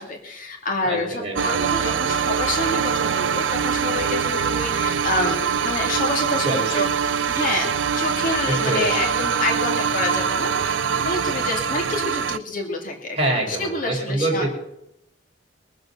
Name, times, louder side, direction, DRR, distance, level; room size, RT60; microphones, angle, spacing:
voice 1, 0.0-6.9 7.3-13.2 13.5-14.5, left 2 dB, 45° left, 2 dB, 2.4 m, -28 dB
voice 2, 0.8-1.5 6.4-6.8 8.5-8.8 13.1-14.5, right 2 dB, 35° right, -1 dB, 4.3 m, -25 dB
sound 1, 1.3-12.4, right 7 dB, 90° right, 0.5 m, -23 dB
22.0 x 7.9 x 6.7 m, 0.83 s
head